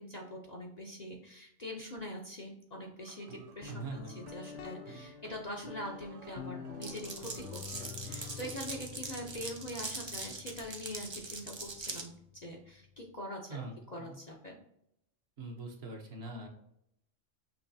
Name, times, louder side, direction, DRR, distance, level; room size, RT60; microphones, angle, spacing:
voice 1, 0.0-13.6 13.9-14.6, left 1 dB, 40° left, -1 dB, 0.7 m, -44 dB
sound 1, 3.0-8.7, right 6 dB, 80° right, 1.0 m, -53 dB
Guitar, 3.6-13.1, left 7 dB, 70° left, 0.9 m, -49 dB
voice 2, 3.7-4.1 13.5-14.2 15.4-16.5, right 3 dB, 60° right, 1 dB, 1.2 m, -42 dB
Glass, 6.8-12.1, right 3 dB, 30° right, 0.5 m, -42 dB
5.9 x 3.1 x 2.7 m, 0.76 s
omnidirectional pair, 1.3 m